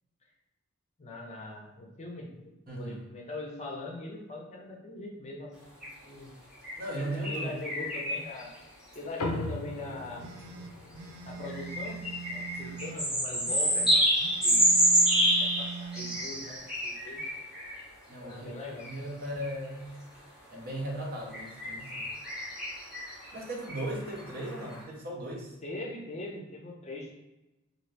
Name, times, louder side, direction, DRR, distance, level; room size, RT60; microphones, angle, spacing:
voice 1, 1.0-6.3 6.9-8.5 8.9-10.3 11.3-14.7 15.4-17.2 18.2-18.9 25.6-27.1, left 2 dB, 30° left, 0 dB, 0.5 m, -41 dB
voice 2, 2.7-3.0 6.8-7.5 18.1-18.5 18.8-20.0 20.5-22.1 23.3-25.6, right 1 dB, 45° right, -1 dB, 0.7 m, -37 dB
sound 1, 5.8-5.9 6.6-8.4 8.9-9.0 11.4-17.8 18.8-18.9 19.4-19.5 21.3-24.8, equal, 5° right, 0.8 m, -28 dB
sound 2, 9.2-13.9, left 2 dB, 90° left, 0.4 m, -40 dB
sound 3, 10.2-13.0 13.4-16.2, right 5 dB, 80° right, 0.4 m, -42 dB
2.8 x 2.6 x 3.2 m, 1.0 s
head